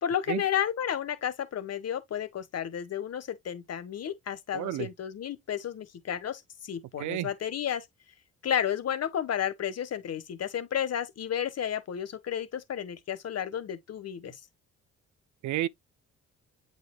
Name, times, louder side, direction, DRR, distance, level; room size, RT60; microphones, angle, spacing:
voice 1, 0.0-7.9 8.4-14.4, left 9 dB, 55° left, 1.6 m, -32 dB
voice 2, 4.5-4.9 7.0-7.3 15.4-15.7, right 14 dB, 75° right, 0.6 m, -30 dB
8.0 x 5.0 x 2.3 m
cardioid pair, 90°, 30 cm